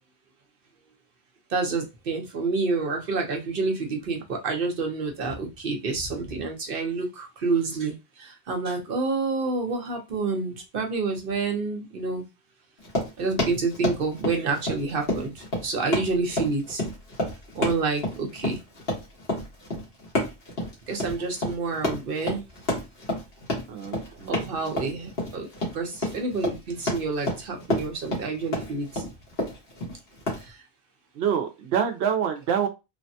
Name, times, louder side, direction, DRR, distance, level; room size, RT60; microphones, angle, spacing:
voice 1, 1.5-12.2 13.2-16.8 17.5-18.6 20.9-22.4 24.3-25.5 25.7-29.0 30.4-30.6, right 4 dB, 60° right, 3 dB, 0.9 m, -28 dB
Run, 12.8-30.4, left 1 dB, 75° left, 1.5 m, -30 dB
voice 2, 23.7-24.5 31.1-32.7, right 8 dB, 90° right, 5 dB, 0.8 m, -26 dB
3.3 x 2.1 x 2.6 m, 0.25 s
omnidirectional pair, 1.0 m